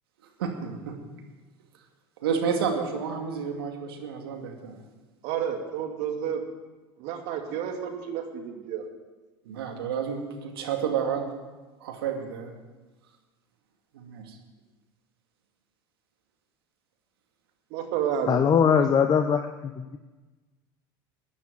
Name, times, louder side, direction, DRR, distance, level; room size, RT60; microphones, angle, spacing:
voice 1, 0.4-1.0 2.2-4.8 9.5-11.3 11.8-12.5 13.9-14.4, right 6 dB, 80° right, 3 dB, 2.4 m, -30 dB
voice 2, 5.2-6.4 7.0-8.8 17.7-18.5, right 8 dB, 60° right, 4 dB, 2.5 m, -30 dB
voice 3, 18.3-20.0, left 7 dB, 35° left, 8 dB, 0.9 m, -22 dB
12.0 x 10.0 x 9.3 m, 1.2 s
hypercardioid pair, 80°, 12 cm